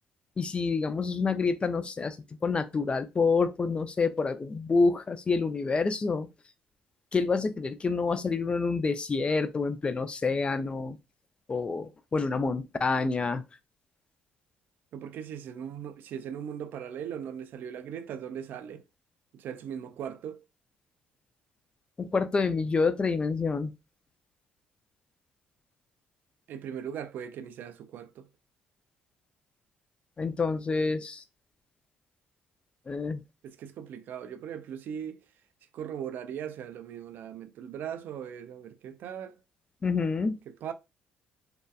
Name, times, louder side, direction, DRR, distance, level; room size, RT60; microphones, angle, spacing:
voice 1, 0.4-2.2 2.4-6.3 7.1-11.0 11.5-13.4 22.0-23.7 30.2-31.2 32.9-33.2 39.8-40.4, left 4 dB, 30° left, 0.4 m, -27 dB
voice 2, 14.9-18.8 19.3-20.4 26.5-28.3 33.4-35.2 35.7-39.4 40.5-40.7, right 8 dB, 70° right, 0.4 m, -39 dB
2.7 x 2.2 x 2.3 m
supercardioid pair, 70°, 4 cm